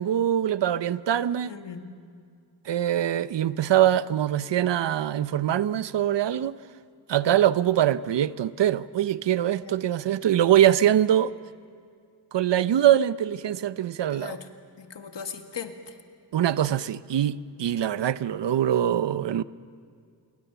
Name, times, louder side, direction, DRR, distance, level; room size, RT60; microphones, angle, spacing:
voice 1, 0.0-1.5 2.7-6.6 7.1-11.3 12.3-14.4 16.3-19.4, right 11 dB, 80° right, 0.7 m, -23 dB
voice 2, 1.5-1.9 9.6-9.8 14.1-14.5 14.8-16.0, left 6 dB, 80° left, 1.8 m, -38 dB
27.5 x 22.5 x 6.9 m
wide cardioid pair, 170°, 42 cm